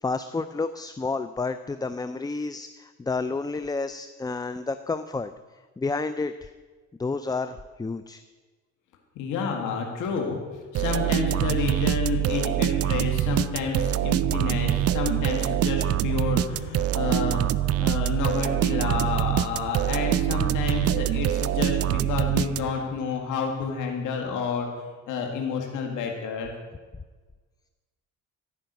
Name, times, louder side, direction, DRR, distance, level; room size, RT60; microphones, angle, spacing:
voice 1, 0.0-5.3 5.8-6.5 7.0-8.2, left 3 dB, 15° left, 11 dB, 0.4 m, -30 dB
voice 2, 9.2-24.7 25.1-26.5, left 6 dB, 85° left, 1 dB, 2.0 m, -30 dB
sound 1, 10.7-23.0, right 12 dB, 55° right, 0.4 m, -25 dB
14.5 x 5.7 x 8.1 m, 1.4 s
cardioid pair, 90°, 30 cm